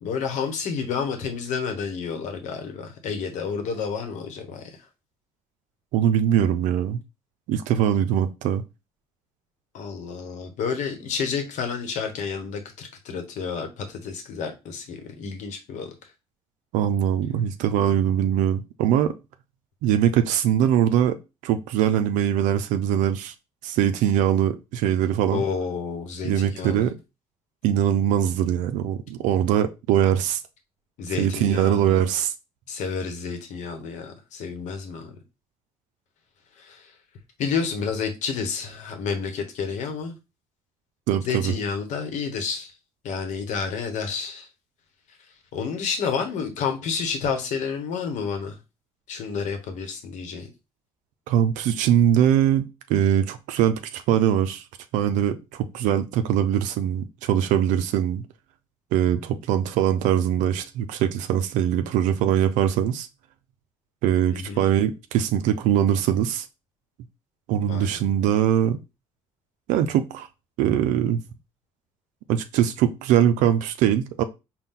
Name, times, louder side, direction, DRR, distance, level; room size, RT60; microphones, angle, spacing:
voice 1, 0.0-4.7 9.7-15.9 25.3-26.8 31.0-32.0 32.7-35.2 36.6-36.9 37.4-40.1 41.2-42.7 43.0-44.5 45.5-48.6 49.1-50.5 64.3-64.6 67.7-68.0, left 6 dB, 70° left, 1.0 m, -30 dB
voice 2, 5.9-7.0 7.5-8.6 16.7-19.1 19.8-21.2 21.4-23.3 23.6-25.4 26.2-27.0 27.6-30.4 31.2-32.3 41.1-41.5 51.3-54.6 54.9-58.2 58.9-63.1 64.0-66.5 67.5-68.8 69.7-70.3 70.6-71.2 72.3-74.2, right 10 dB, 80° right, 0.4 m, -22 dB
4.1 x 2.2 x 3.6 m
supercardioid pair, 60°, 13 cm